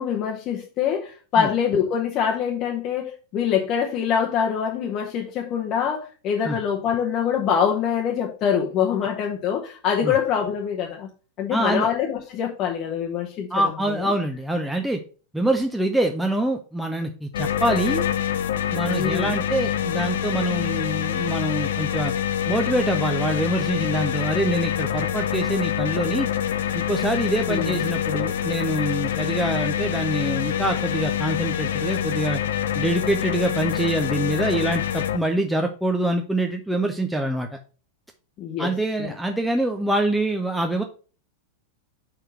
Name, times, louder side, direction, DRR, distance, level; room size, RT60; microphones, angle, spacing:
voice 1, 0.0-11.1 11.4-13.5 13.9-14.1 18.9-19.3 27.5-27.8 38.4-38.7 39.0-39.1, left 8 dB, 35° left, 0.9 m, -24 dB
voice 2, 11.5-11.9 13.5-15.0 15.3-18.1 18.7-22.1 22.5-26.3 26.7-32.4 32.7-37.5 38.6-40.8, right 1 dB, 5° right, 0.6 m, -25 dB
sound 1, 17.3-35.2, left 9 dB, 60° left, 0.5 m, -26 dB
5.0 x 4.6 x 5.5 m
figure-of-eight pair, 90°, 0 cm